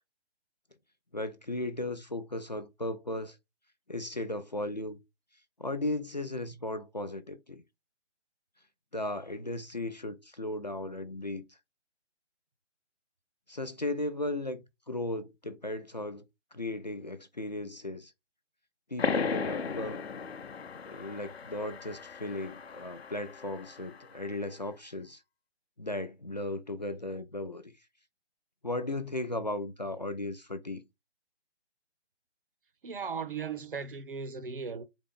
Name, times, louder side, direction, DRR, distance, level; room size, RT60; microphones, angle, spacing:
voice 1, 1.1-3.4 3.9-5.0 5.6-7.6 8.9-11.4 13.5-16.2 16.5-18.1 18.9-20.0 20.9-25.2 25.8-27.7 28.6-30.8, left 2 dB, 40° left, 0.4 m, -36 dB
sound 1, 19.0-24.2, left 5 dB, 60° left, 0.7 m, -36 dB
voice 2, 32.8-34.8, right 5 dB, 50° right, 0.6 m, -37 dB
3.9 x 3.8 x 3.5 m
hypercardioid pair, 170°, 35 cm